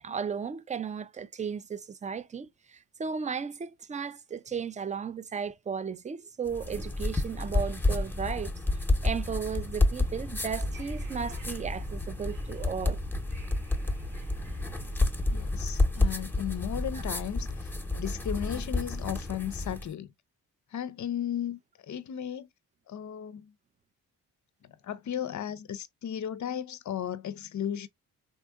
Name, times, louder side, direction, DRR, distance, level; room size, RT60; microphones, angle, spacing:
voice 1, 0.0-13.0 16.9-17.0, right 6 dB, 20° right, 0.3 m, -35 dB
sound 1, 6.5-19.9, left 2 dB, 5° left, 0.9 m, -30 dB
Wind / Subway metro underground, 10.5-15.5, right 2 dB, 85° right, 1.0 m, -42 dB
voice 2, 15.3-20.1 20.7-21.6 21.9-22.5 22.9-23.5 24.8-27.9, left 9 dB, 45° left, 0.6 m, -35 dB
3.4 x 2.8 x 2.3 m
supercardioid pair, 50°, 44 cm